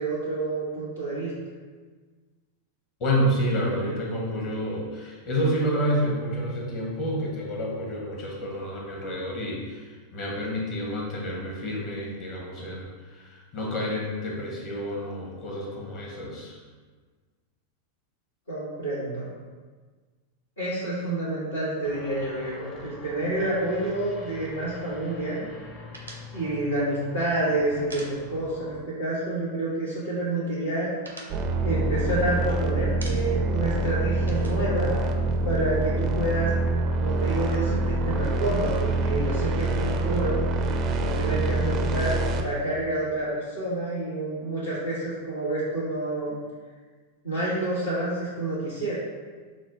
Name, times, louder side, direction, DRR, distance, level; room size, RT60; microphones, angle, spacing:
voice 1, 0.0-1.3 18.5-19.3 20.6-25.5 26.3-30.9 31.6-35.0 35.4-36.5 37.0-40.4 41.0-46.4 47.2-48.9, right 2 dB, 70° left, -12 dB, 1.5 m, -28 dB
voice 2, 3.0-16.6, equal, 40° left, -2 dB, 1.1 m, -29 dB
sound 1, 21.8-28.9, left 3 dB, 20° left, 0.6 m, -44 dB
sound 2, 25.9-28.7 29.0-29.2 29.5-30.1 30.5-32.5 32.8-33.6 33.8-35.6, right 2 dB, 85° right, 0.6 m, -45 dB
sound 3, 31.3-42.4, right 2 dB, 35° right, 0.4 m, -25 dB
6.1 x 2.1 x 3.6 m, 1.4 s
figure-of-eight pair, 90°, 0 cm